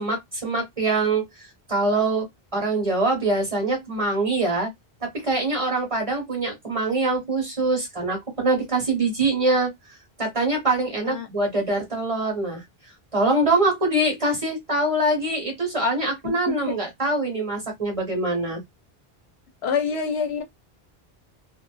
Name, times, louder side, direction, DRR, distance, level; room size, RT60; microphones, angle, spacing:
voice 1, 0.0-2.2 2.5-4.7 5.0-9.7 10.2-12.6 13.1-18.6, right 2 dB, 35° right, 1.1 m, -24 dB
voice 2, 16.2-16.7 19.6-20.4, left 5 dB, 85° left, 0.9 m, -27 dB
2.5 x 2.4 x 2.2 m
omnidirectional pair, 1.0 m